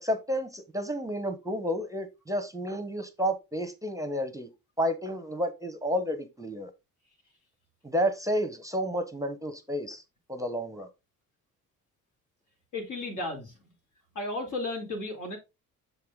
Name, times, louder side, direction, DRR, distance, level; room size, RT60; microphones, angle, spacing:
voice 1, 0.0-4.5 4.8-6.7 7.8-10.0 10.3-10.9, equal, 10° right, 0.8 m, -31 dB
voice 2, 12.7-13.5 14.1-15.4, left 2 dB, 65° left, 2.8 m, -34 dB
6.7 x 4.8 x 3.6 m
cardioid pair, 90°, 34 cm